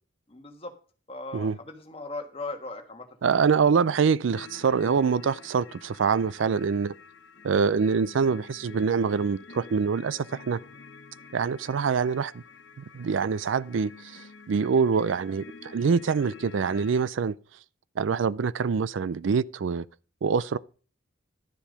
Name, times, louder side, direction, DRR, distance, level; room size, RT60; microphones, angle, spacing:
voice 1, 0.3-0.7 1.1-3.6, left 2 dB, 30° left, 1.5 m, -39 dB
voice 2, 3.2-6.9 7.4-10.6 11.3-12.4 12.9-17.4 18.0-19.8 20.2-20.6, right 5 dB, 75° right, 0.4 m, -25 dB
sound 1, 4.3-17.0, left 4 dB, 65° left, 1.0 m, -48 dB
11.5 x 7.2 x 5.1 m
head